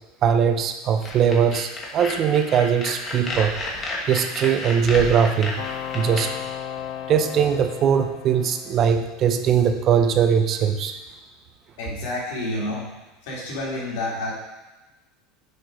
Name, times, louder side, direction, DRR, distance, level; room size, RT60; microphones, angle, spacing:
voice 1, 0.2-3.5 4.1-5.6 5.9-6.3 7.1-10.9, right 7 dB, 30° right, 7 dB, 0.5 m, -20 dB
sound 1, 1.0-6.2, left 2 dB, 20° left, 1.1 m, -31 dB
sound 2, 5.6-9.3, left 10 dB, 50° left, 0.5 m, -35 dB
voice 2, 11.8-12.9 13.2-14.3, left 1 dB, 70° left, -4 dB, 2.4 m, -29 dB
6.4 x 4.7 x 4.9 m, 1.1 s
cardioid pair, 175°, 0 cm